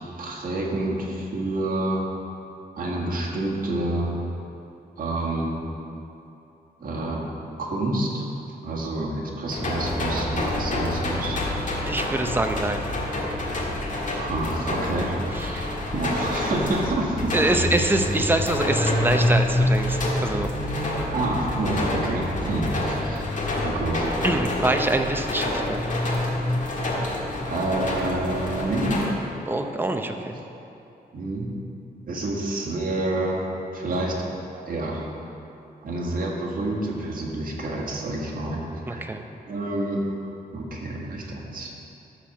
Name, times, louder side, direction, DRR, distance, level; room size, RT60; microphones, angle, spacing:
voice 1, 0.2-2.1 2.8-4.1 5.0-5.6 6.8-8.3 8.6-11.4 14.2-17.4 21.1-23.2 23.6-24.1 27.5-29.2 31.1-31.5 32.1-33.4 33.7-34.1 34.7-35.1 35.8-38.6 38.9-39.1 39.5-40.1 40.5-41.8, right 2 dB, 60° right, -3 dB, 1.7 m, -28 dB
sound 1, 9.5-29.1, left 1 dB, 50° left, 1.6 m, -27 dB
voice 2, 11.9-12.8 15.3-15.7 17.3-20.5 24.2-25.8 29.5-30.4 38.9-39.2, right 2 dB, 10° right, 5 dB, 0.6 m, -25 dB
13.0 x 4.4 x 6.0 m, 2.8 s
wide cardioid pair, 140°, 17 cm